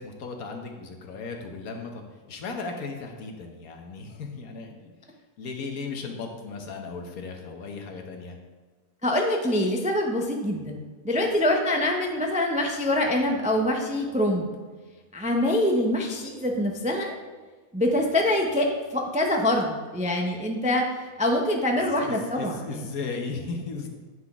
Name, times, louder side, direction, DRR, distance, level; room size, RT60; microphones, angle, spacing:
voice 1, 0.0-2.0 2.3-4.9 5.4-8.4 22.0-23.9, left 4 dB, 75° left, 3 dB, 1.4 m, -36 dB
voice 2, 9.0-14.5 15.1-17.1 17.7-22.9, left 1 dB, 10° right, 1 dB, 0.4 m, -25 dB
9.3 x 5.8 x 3.6 m, 1.4 s
omnidirectional pair, 1.5 m